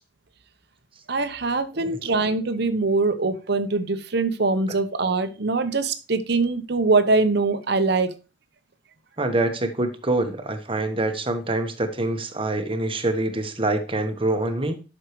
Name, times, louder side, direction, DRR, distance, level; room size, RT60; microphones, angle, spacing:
voice 1, 1.1-8.1, right 3 dB, 60° right, 10 dB, 1.0 m, -23 dB
voice 2, 9.2-14.8, right 2 dB, 30° right, 7 dB, 1.2 m, -25 dB
11.0 x 6.4 x 3.2 m, 0.32 s
head